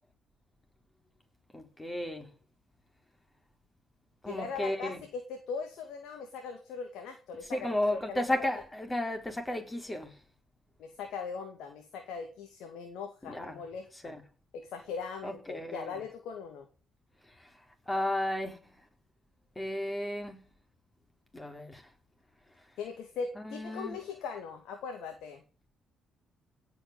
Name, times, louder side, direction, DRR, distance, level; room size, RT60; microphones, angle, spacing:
voice 1, 1.5-2.3 4.2-5.0 7.5-10.1 13.2-13.6 14.0-14.2 15.2-15.9 17.9-18.6 19.6-20.4 21.3-21.8 23.4-24.0, left 1 dB, 20° left, 4.5 m, -33 dB
voice 2, 4.3-8.5 10.8-14.2 14.5-16.7 22.8-25.4, left 5 dB, 70° left, 2.3 m, -40 dB
17.0 x 6.3 x 8.9 m
hypercardioid pair, 45°, 0 cm